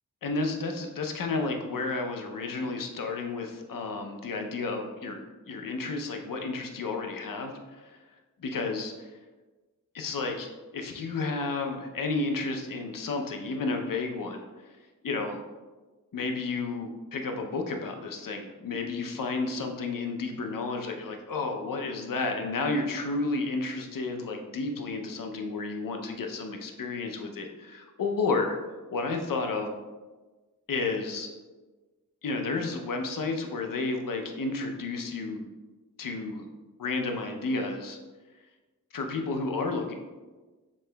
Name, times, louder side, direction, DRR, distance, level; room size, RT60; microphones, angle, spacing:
voice 1, 0.2-8.0 8.4-9.1 9.9-14.4 15.0-15.4 16.1-28.5 28.9-29.7 30.7-31.3 32.2-35.4 36.0-36.4 36.8-38.0 38.9-39.9, left 3 dB, 70° left, 4 dB, 0.6 m, -31 dB
5.3 x 3.8 x 2.2 m, 1.3 s
wide cardioid pair, 65°, 34 cm